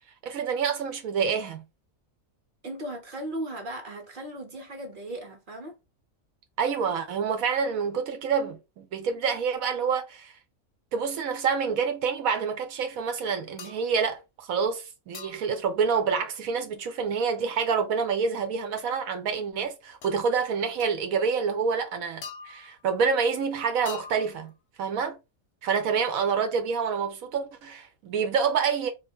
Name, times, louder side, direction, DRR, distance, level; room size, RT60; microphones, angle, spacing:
voice 1, 0.2-1.6 6.6-10.3 10.9-24.5 24.8-25.2 25.6-28.9, right 6 dB, 85° right, 1.2 m, -27 dB
voice 2, 2.6-5.8, right 1 dB, 45° right, 0.9 m, -37 dB
Wobbly Can Tings, 13.6-13.9 15.1-15.6 18.8-18.9 20.0-20.2 20.8-21.0 22.2-22.9 23.9-24.5, left 6 dB, 60° left, 0.7 m, -43 dB
2.7 x 2.6 x 4.3 m
omnidirectional pair, 1.4 m